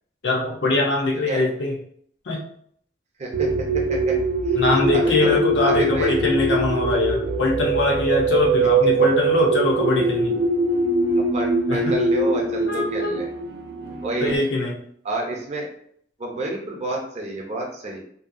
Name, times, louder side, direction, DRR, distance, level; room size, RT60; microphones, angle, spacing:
voice 1, 0.2-1.7 2.3-2.4 4.5-10.3 11.7-12.0 12.7-13.2 14.2-14.7, left 2 dB, 75° left, 0 dB, 0.6 m, -22 dB
voice 2, 3.2-4.2 4.5-4.6 4.9-6.2 11.1-13.3 14.0-14.5 15.0-15.7 16.2-18.0, right 2 dB, 40° right, 0 dB, 0.6 m, -29 dB
sound 1, 3.3-14.4, right 2 dB, 85° right, 0.5 m, -22 dB
2.7 x 2.2 x 2.5 m, 0.64 s
head